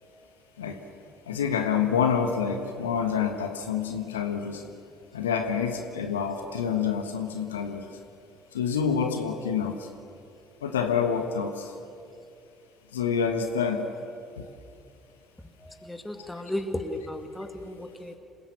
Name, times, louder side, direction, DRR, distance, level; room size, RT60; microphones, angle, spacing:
voice 1, 1.3-4.6 5.1-7.9 8.5-9.7 10.6-11.7 12.9-13.9 14.4-14.5, left 7 dB, 80° left, 6 dB, 1.4 m, -27 dB
voice 2, 15.6-18.2, left 1 dB, 5° left, 6 dB, 2.2 m, -35 dB
27.0 x 16.0 x 7.4 m, 2.5 s
figure-of-eight pair, 55°, 0 cm